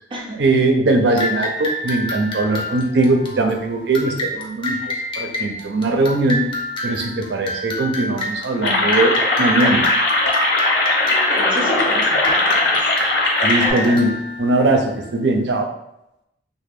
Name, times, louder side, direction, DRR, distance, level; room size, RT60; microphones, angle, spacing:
voice 1, 0.4-6.4 6.8-9.9 13.4-15.7, right 2 dB, 70° right, 4 dB, 0.5 m, -20 dB
sound 1, 1.2-15.3, left 1 dB, 30° left, 0.6 m, -28 dB
sound 2, 8.6-13.7, left 2 dB, 70° left, 0.8 m, -19 dB
voice 2, 11.5-12.8 13.6-14.1, equal, 30° right, -1 dB, 0.6 m, -29 dB
3.2 x 2.1 x 3.5 m, 0.86 s
head